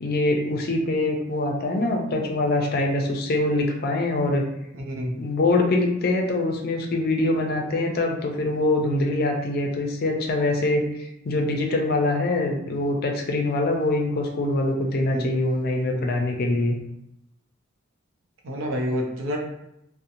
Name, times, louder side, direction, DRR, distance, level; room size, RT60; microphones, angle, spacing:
voice 1, 0.0-4.4 5.2-16.8, left 2 dB, 50° left, 2 dB, 0.4 m, -24 dB
voice 2, 4.7-5.2 15.0-15.5 18.4-19.4, equal, 80° right, 0 dB, 0.6 m, -29 dB
2.8 x 2.1 x 2.5 m, 0.81 s
head